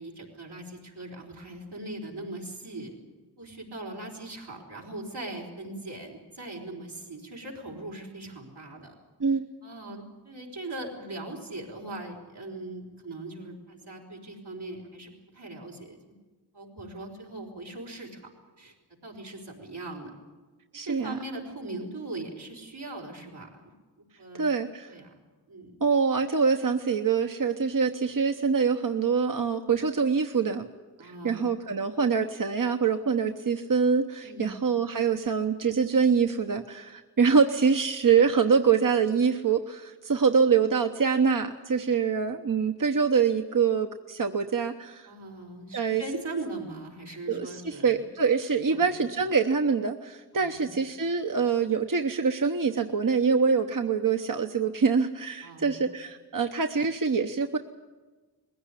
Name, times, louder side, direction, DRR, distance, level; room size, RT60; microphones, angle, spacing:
voice 1, 0.0-2.9 3.4-8.9 9.3-16.0 16.5-18.3 18.6-18.7 19.0-20.1 20.7-23.7 24.2-24.4 24.9-25.1 25.5-25.7 31.0-31.5 34.2-34.6 45.1-47.9 48.7-49.0 50.3-50.7 55.4-55.8, right 2 dB, 90° right, -2 dB, 4.7 m, -40 dB
voice 2, 20.7-21.2 24.3-24.9 25.8-30.7 31.0-45.1 45.7-46.0 47.3-57.6, right 5 dB, 55° right, 5 dB, 1.0 m, -25 dB
20.5 x 16.0 x 9.9 m, 1.3 s
cardioid pair, 40°, 39 cm